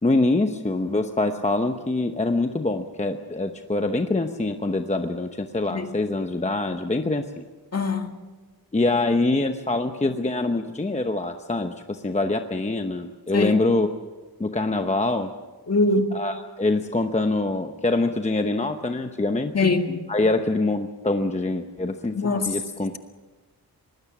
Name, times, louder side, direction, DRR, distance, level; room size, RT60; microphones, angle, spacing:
voice 1, 0.0-7.4 8.7-13.9 14.4-15.3 16.1-19.5 20.1-23.0, left 2 dB, 20° left, 6 dB, 0.9 m, -24 dB
voice 2, 7.7-8.1 13.3-13.5 15.7-16.1 19.5-20.0 22.2-22.5, left 3 dB, 40° left, 5 dB, 1.9 m, -22 dB
25.0 x 20.0 x 6.1 m, 1.3 s
wide cardioid pair, 140°, 37 cm